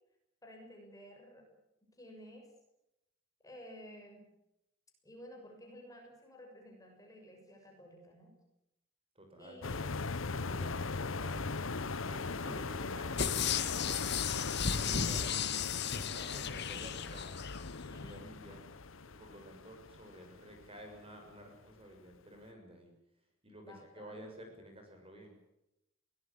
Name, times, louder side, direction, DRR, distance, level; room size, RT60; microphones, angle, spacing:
voice 1, 0.4-1.4 2.0-2.5 3.4-4.2 5.0-8.3 9.4-9.8 12.4-12.7 16.3-16.8 23.6-24.2, equal, 15° left, 2 dB, 6.7 m, -53 dB
voice 2, 9.1-11.7 11.9-15.3 15.8-17.4 17.8-18.6 19.0-22.9 23.4-25.4, right 1 dB, 30° right, 3 dB, 6.5 m, -52 dB
sound 1, 9.6-21.0 21.4-21.6, left 4 dB, 75° left, 1.0 m, -39 dB
sound 2, 13.2-17.6 18.0-18.1, left 7 dB, 55° left, 1.9 m, -35 dB
23.0 x 19.5 x 8.7 m, 0.85 s
head